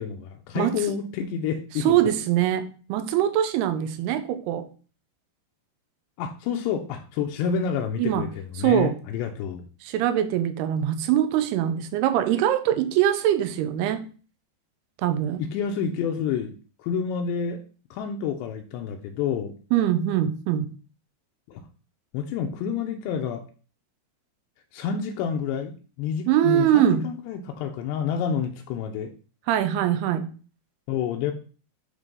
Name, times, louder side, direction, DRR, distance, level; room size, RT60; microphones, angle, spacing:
voice 1, 0.0-2.0 6.2-9.7 15.4-16.5 16.8-17.6 17.9-19.5 21.5-21.6 22.1-23.4 24.7-29.1 30.9-31.3, left 7 dB, 80° left, 4 dB, 2.9 m, -29 dB
voice 2, 1.8-4.7 8.0-8.3 8.6-9.0 9.8-14.1 15.0-15.4 19.7-20.7 26.3-27.1 29.5-30.3, right 11 dB, 80° right, 10 dB, 2.5 m, -23 dB
9.7 x 3.4 x 5.3 m, 0.37 s
omnidirectional pair, 5.0 m